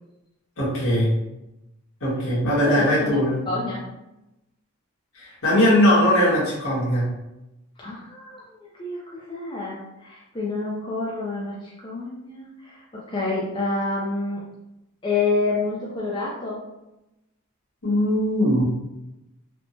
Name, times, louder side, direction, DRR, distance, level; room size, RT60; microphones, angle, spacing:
voice 1, 0.6-1.1 2.0-3.5 5.1-7.1 17.8-18.6, equal, 65° left, -8 dB, 1.3 m, -20 dB
voice 2, 2.6-3.2 3.5-3.9 7.8-8.4 8.8-14.4 15.0-16.6, left 3 dB, 20° left, -6 dB, 0.4 m, -28 dB
3.4 x 2.0 x 2.6 m, 0.94 s
head